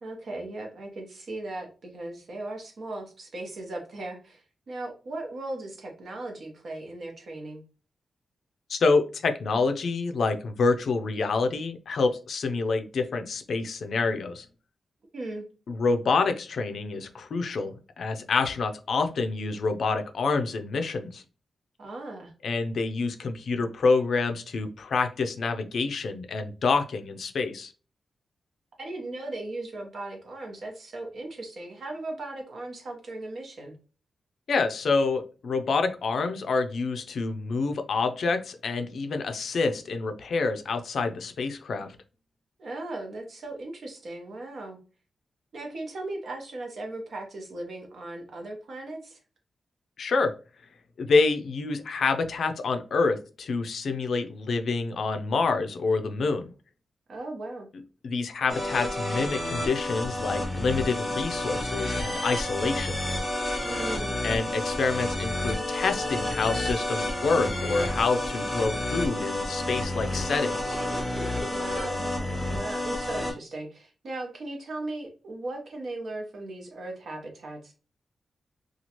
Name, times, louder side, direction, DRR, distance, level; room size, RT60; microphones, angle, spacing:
voice 1, 0.0-7.6 15.1-15.4 21.8-22.3 28.8-33.8 42.6-44.8 45.5-49.2 57.1-57.7 63.6-64.2 71.5-77.7, right 2 dB, 60° right, 2 dB, 0.9 m, -37 dB
voice 2, 8.7-14.4 15.7-21.2 22.4-27.7 34.5-42.0 50.0-50.3 51.0-56.5 58.0-63.0 64.2-70.8, left 4 dB, 65° left, 6 dB, 0.4 m, -27 dB
sound 1, 58.5-73.3, left 1 dB, 5° left, 0.8 m, -30 dB
2.9 x 2.3 x 2.8 m, 0.35 s
wide cardioid pair, 135°, 0 cm